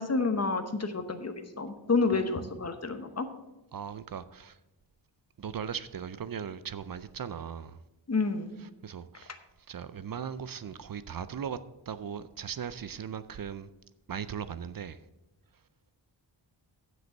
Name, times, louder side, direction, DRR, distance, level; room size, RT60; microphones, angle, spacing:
voice 1, 0.0-3.3 8.1-8.5, left 4 dB, 35° left, 1.0 m, -29 dB
voice 2, 3.7-4.6 5.4-7.8 8.8-9.4 9.7-11.6 11.9-13.7 14.1-15.0, right 7 dB, 50° right, 0.5 m, -38 dB
7.8 x 6.3 x 7.1 m
wide cardioid pair, 95°, 47 cm